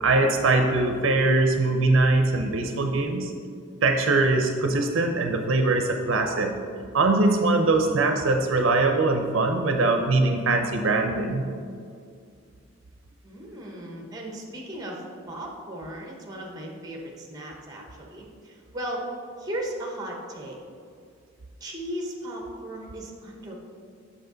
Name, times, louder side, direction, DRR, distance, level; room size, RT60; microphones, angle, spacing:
voice 1, 0.0-3.3 3.8-6.5 6.9-11.5, right 2 dB, 70° right, 4 dB, 0.6 m, -22 dB
voice 2, 13.2-19.0 19.4-20.6 21.6-23.5, right 1 dB, 20° right, 0 dB, 1.0 m, -36 dB
7.9 x 6.2 x 3.9 m, 2.2 s
head